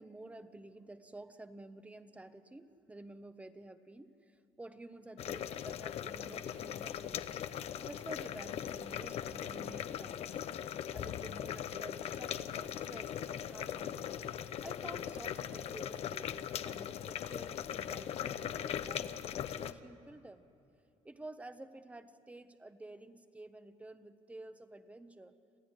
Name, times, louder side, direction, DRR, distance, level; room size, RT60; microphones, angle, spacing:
voice 1, 0.0-7.4 7.9-10.4 10.9-14.2 14.6-20.4 21.0-25.3, right 2 dB, 10° right, 10 dB, 1.1 m, -51 dB
sound 1, 5.2-19.7, left 10 dB, 60° left, 0.8 m, -40 dB
27.5 x 15.5 x 9.8 m, 2.7 s
cardioid pair, 120°, 12 cm